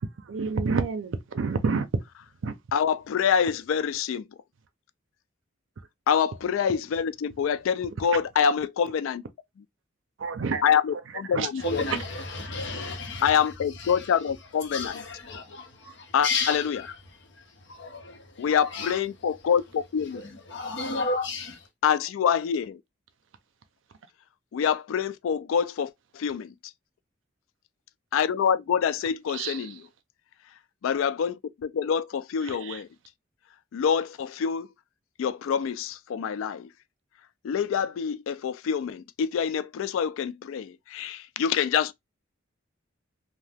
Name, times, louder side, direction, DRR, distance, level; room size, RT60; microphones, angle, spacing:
voice 1, 0.3-1.9 2.4-2.5 10.2-10.6 11.3-11.5 29.3-29.6 32.4-32.8, right 4 dB, 70° right, 0.5 m, -28 dB
voice 2, 2.7-4.2 6.1-9.2 10.6-11.8 13.2-14.9 16.1-16.8 18.4-20.2 21.8-22.8 24.5-26.5 28.1-29.8 30.8-32.9 33.7-34.7 35.2-36.7 37.4-41.9, left 7 dB, 80° left, 0.3 m, -26 dB
voice 3, 11.6-14.3 14.6-19.0 20.1-21.7, left 3 dB, 60° left, 0.8 m, -33 dB
2.7 x 2.1 x 3.3 m
head